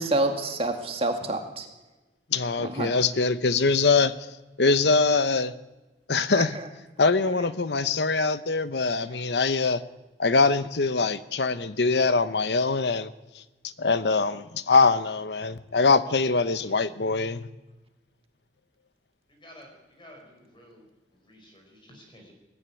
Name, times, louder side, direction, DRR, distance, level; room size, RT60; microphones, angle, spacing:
voice 1, 0.0-1.7 2.6-2.9 6.4-6.7, right 2 dB, 35° right, 5 dB, 2.2 m, -28 dB
voice 2, 2.3-4.1 4.6-5.5 6.1-6.6 7.0-9.8 10.2-13.4 13.8-17.5, left 4 dB, 70° left, 14 dB, 0.9 m, -23 dB
voice 3, 20.0-20.8 21.3-22.3, equal, 30° left, 2 dB, 5.2 m, -51 dB
21.0 x 13.5 x 10.0 m, 1.1 s
head